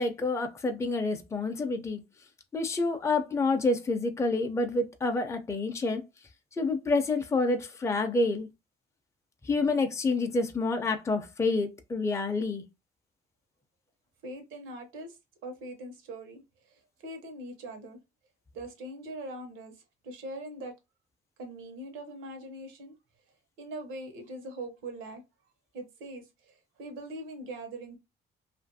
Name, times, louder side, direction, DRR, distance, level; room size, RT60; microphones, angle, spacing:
voice 1, 0.0-2.0 2.5-6.0 6.6-8.5 9.4-12.7, left 3 dB, 15° left, 0.5 m, -28 dB
voice 2, 14.2-15.2 15.4-16.4 16.7-18.0 18.5-19.7 20.0-20.7 21.4-23.0 23.6-25.2 25.7-28.0, right 1 dB, 90° right, 0.9 m, -41 dB
2.6 x 2.5 x 2.6 m
cardioid pair, 90°, 20 cm